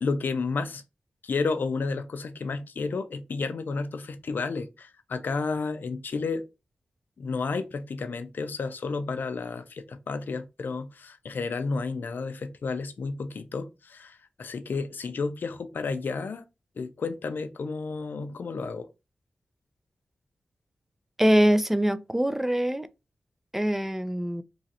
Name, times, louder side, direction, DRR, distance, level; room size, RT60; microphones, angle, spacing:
voice 1, 0.0-0.8 1.2-6.4 7.2-16.4 16.8-18.9, left 4 dB, 70° left, 0.4 m, -31 dB
voice 2, 21.2-22.9 23.5-24.4, equal, 10° right, 0.3 m, -23 dB
3.0 x 2.4 x 2.8 m
cardioid pair, 50°, 3 cm